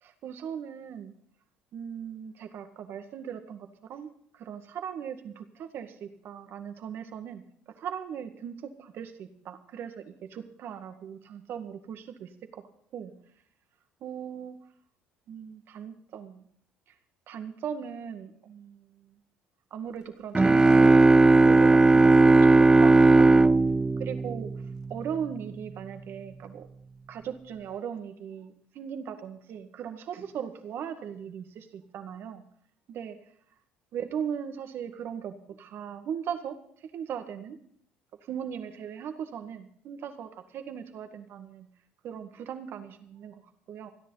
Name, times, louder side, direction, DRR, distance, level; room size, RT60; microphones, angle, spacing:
voice 1, 0.0-1.1 1.7-7.4 7.7-12.6 12.9-13.1 14.0-14.6 15.3-16.5 17.3-19.2 19.7-23.3 24.0-24.6 24.9-26.7 27.1-32.4 32.9-33.2 33.9-36.6 36.9-37.6 38.2-41.7 42.0-43.9, right 8 dB, 60° right, 7 dB, 1.9 m, -38 dB
sound 1, 20.3-25.0, right 3 dB, 15° right, 0.5 m, -18 dB
27.0 x 10.5 x 4.0 m, 0.64 s
hypercardioid pair, 65°, 4 cm